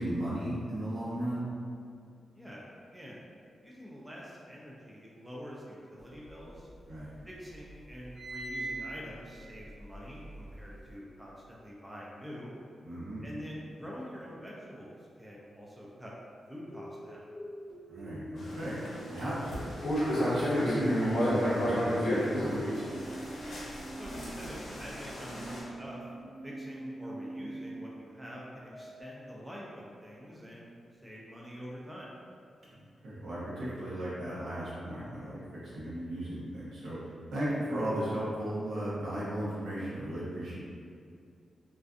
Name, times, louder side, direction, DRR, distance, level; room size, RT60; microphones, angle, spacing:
voice 1, 0.0-1.5 6.9-7.1 12.8-13.3 17.9-18.8 19.1-19.7 20.0-22.6 33.0-37.0 37.3-40.6, right 1 dB, 80° right, -9 dB, 0.8 m, -35 dB
voice 2, 3.6-6.7 7.2-12.5 13.2-16.1 16.5-17.3 23.9-26.0 26.4-30.8 31.0-32.1, equal, 10° right, -5 dB, 0.3 m, -46 dB
sound 1, 6.1-7.2 7.5-10.9, right 2 dB, 35° right, 0.8 m, -42 dB
sound 2, 16.7-22.2 22.8-27.7 28.7-29.0, equal, 45° left, 0.6 m, -44 dB
sound 3, 18.4-25.6, equal, 80° left, 0.6 m, -32 dB
2.4 x 2.4 x 2.3 m, 2.3 s
wide cardioid pair, 130°, 0 cm